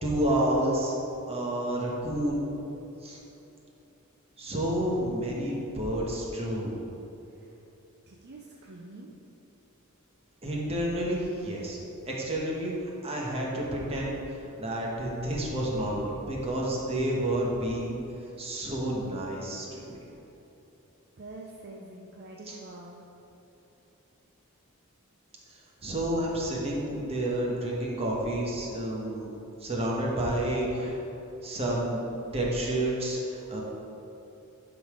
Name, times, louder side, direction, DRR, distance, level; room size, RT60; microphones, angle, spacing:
voice 1, 0.0-0.9 1.3-2.4 3.0-3.2 4.4-6.8 10.4-11.8 12.1-12.7 13.0-14.2 14.6-18.0 18.4-20.0 22.5-22.6 25.5-29.3 29.6-31.0 31.4-32.0 32.3-33.6, right 1 dB, 30° right, -3 dB, 1.3 m, -30 dB
voice 2, 7.3-7.6 8.1-9.1 20.0-20.3 21.2-23.1, right 2 dB, 50° right, -1 dB, 0.6 m, -46 dB
10.5 x 4.0 x 5.0 m, 3.0 s
head